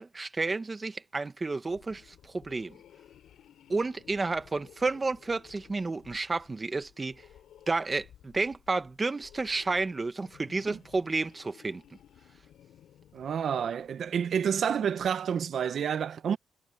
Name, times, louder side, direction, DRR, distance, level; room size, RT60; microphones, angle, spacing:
voice 1, 0.0-2.7 3.7-7.1 7.7-11.8, right 3 dB, 25° right, 1.5 m, -31 dB
sound 1, 1.6-14.1, left 10 dB, 75° left, 5.0 m, -57 dB
voice 2, 13.1-16.4, right 7 dB, 60° right, 1.3 m, -29 dB
cardioid pair, 90°, 0 cm